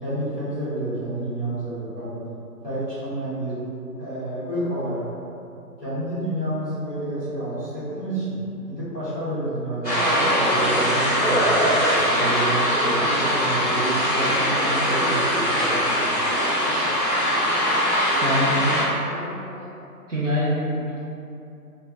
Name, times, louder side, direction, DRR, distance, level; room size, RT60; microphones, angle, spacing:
voice 1, 0.0-2.2 2.6-3.6 4.0-5.0 5.8-8.4 8.7-11.7 12.1-15.8, right 1 dB, 5° right, -17 dB, 1.2 m, -29 dB
sound 1, 9.8-18.8, equal, 20° right, 1.4 m, -21 dB
voice 2, 18.2-19.7 20.1-21.0, equal, 50° right, -8 dB, 0.6 m, -26 dB
3.5 x 2.3 x 3.3 m, 2.7 s
figure-of-eight pair, 160°, 48 cm